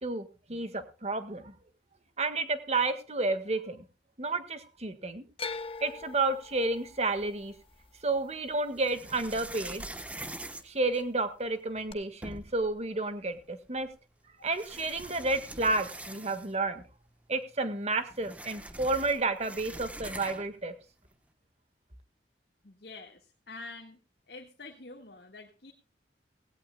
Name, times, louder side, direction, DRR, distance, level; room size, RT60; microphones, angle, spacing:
voice 1, 0.0-1.5 2.2-3.8 4.2-5.2 5.8-7.5 8.0-9.8 10.6-13.9 14.4-16.8 17.3-20.7, right 3 dB, 35° right, 10 dB, 1.7 m, -31 dB
sound 1, 5.4-9.6 9.9-10.6 11.9-12.0, left 4 dB, 30° left, 0.9 m, -43 dB
sound 2, 7.2-7.9 8.7-11.5 11.9-12.0 12.2-12.7 13.8-13.9 14.5-16.7 17.0-17.1 17.4-20.6, right 1 dB, 10° right, 1.0 m, -44 dB
voice 2, 22.6-24.0 24.3-25.7, left 3 dB, 60° left, 2 dB, 1.7 m, -47 dB
17.5 x 17.0 x 2.3 m, 0.32 s
head